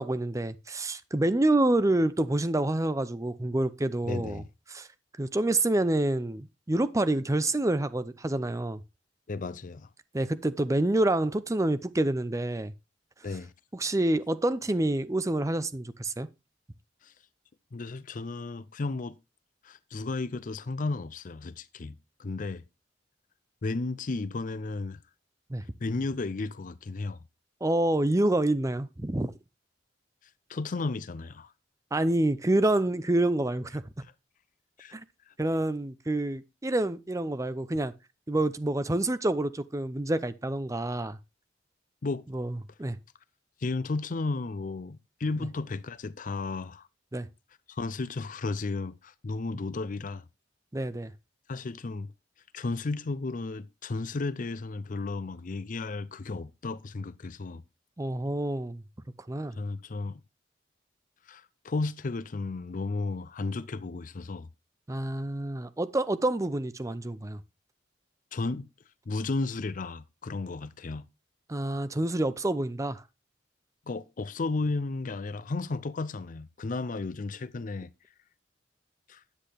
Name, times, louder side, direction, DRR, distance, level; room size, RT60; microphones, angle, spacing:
voice 1, 0.0-4.4 4.7-4.9 5.2-8.8 10.1-12.7 13.7-16.3 25.5-25.6 27.6-29.3 31.9-33.9 34.9-35.0 35.4-37.9 38.3-41.2 42.3-43.0 47.1-47.3 50.7-51.1 58.0-58.8 59.3-59.6 64.9-67.4 71.5-73.0, right 1 dB, 15° right, 0.6 m, -27 dB
voice 2, 4.1-4.5 9.3-9.9 13.2-13.5 17.0-17.1 17.7-19.2 19.6-22.6 23.6-25.0 25.8-27.2 30.5-31.5 34.8-34.9 35.3-35.4 42.0-42.2 43.6-46.9 47.7-50.3 51.5-52.1 52.5-57.6 59.6-60.2 61.3-64.5 68.3-68.7 69.1-71.1 73.9-77.9 79.1-79.2, left 3 dB, 45° left, 0.5 m, -33 dB
10.0 x 8.5 x 3.4 m
head